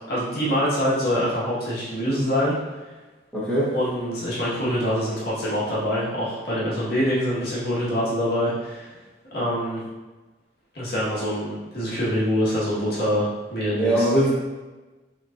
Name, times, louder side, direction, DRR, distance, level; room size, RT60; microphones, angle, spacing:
voice 1, 0.1-2.8 3.7-8.9 9.3-9.8 10.7-14.1, equal, 60° left, -8 dB, 1.5 m, -25 dB
voice 2, 3.3-3.7 13.7-14.3, right 1 dB, 5° left, -10 dB, 1.3 m, -21 dB
6.2 x 3.1 x 2.6 m, 1.2 s
head